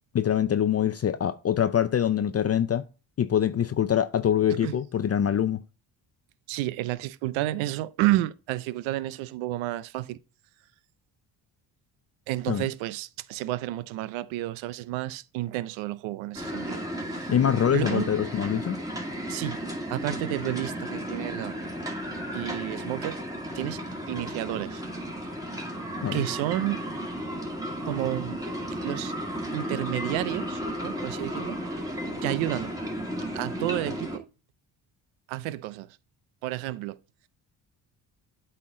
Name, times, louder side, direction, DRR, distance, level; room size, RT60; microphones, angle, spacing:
voice 1, 0.1-2.8 3.2-5.6 12.5-12.6 17.3-18.8 26.0-26.2, left 9 dB, 35° left, 0.5 m, -24 dB
voice 2, 6.5-10.2 12.3-17.3 17.7-18.1 19.3-19.6 19.9-21.6 22.3-23.2 23.5-23.8 24.1-24.8 26.1-26.8 27.9-28.4 28.8-29.1 29.5-31.6 32.2-32.7 33.3-34.3 35.3-36.0 36.4-37.0, right 16 dB, 90° right, 0.6 m, -31 dB
sound 1, 16.3-34.2, equal, 10° right, 2.4 m, -34 dB
8.4 x 4.5 x 3.6 m
supercardioid pair, 70°, 46 cm